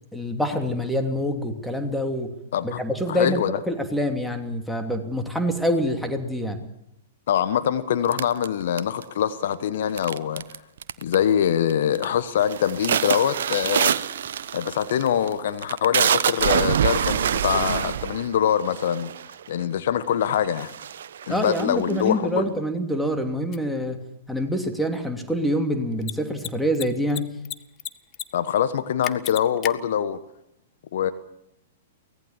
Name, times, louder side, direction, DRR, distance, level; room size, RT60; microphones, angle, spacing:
voice 1, 0.1-2.3 2.6-3.4 3.7-6.6 21.3-24.0 24.3-27.3, equal, ahead, 5 dB, 2.9 m, -26 dB
voice 2, 3.1-3.6 7.3-10.4 11.0-13.9 14.5-19.1 19.5-20.7 21.3-22.5 28.3-30.2 30.9-31.1, left 9 dB, 60° left, 12 dB, 1.3 m, -24 dB
sound 1, 8.1-9.2 10.0-10.6 10.8-11.3 11.7-12.1 12.4-19.5 20.1-20.2 20.5-22.1, right 9 dB, 65° right, 0.9 m, -25 dB
Mechanisms, 23.5-23.6 25.9-26.1 26.4-26.5 26.7-27.5 27.8-28.2 28.5-28.6 29.0-29.7, left 13 dB, 30° left, 1.1 m, -32 dB
24.0 x 18.5 x 7.4 m, 0.82 s
figure-of-eight pair, 105°, 0 cm